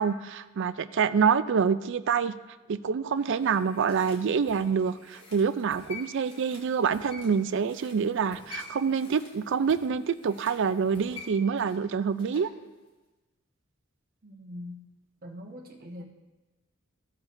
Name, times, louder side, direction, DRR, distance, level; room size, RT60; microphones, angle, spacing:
voice 1, 0.0-2.3 2.7-12.5, right 6 dB, 60° right, 13 dB, 0.4 m, -26 dB
sound 1, 3.1-12.6 12.9-13.0, left 3 dB, 25° left, 2.4 m, -48 dB
voice 2, 14.2-14.9 15.2-16.0, left 1 dB, 45° right, 0 dB, 1.3 m, -42 dB
15.5 x 7.2 x 2.6 m, 1.1 s
head